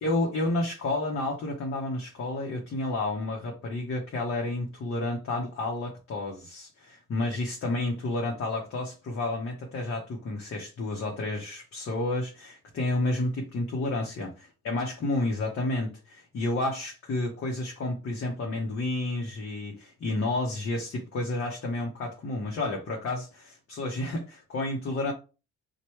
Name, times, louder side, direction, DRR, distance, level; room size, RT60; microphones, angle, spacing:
voice 1, 0.0-25.1, left 2 dB, 45° left, 0.8 m, -31 dB
3.1 x 2.2 x 3.0 m
cardioid pair, 90°, 30 cm